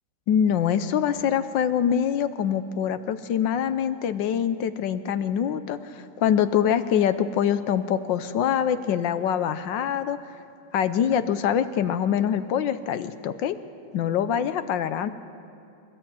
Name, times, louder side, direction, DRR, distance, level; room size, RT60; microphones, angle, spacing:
voice 1, 0.3-10.2 10.7-13.6 13.9-15.1, left 9 dB, 75° left, 12 dB, 1.4 m, -24 dB
26.0 x 13.0 x 8.9 m, 2.5 s
omnidirectional pair, 2.1 m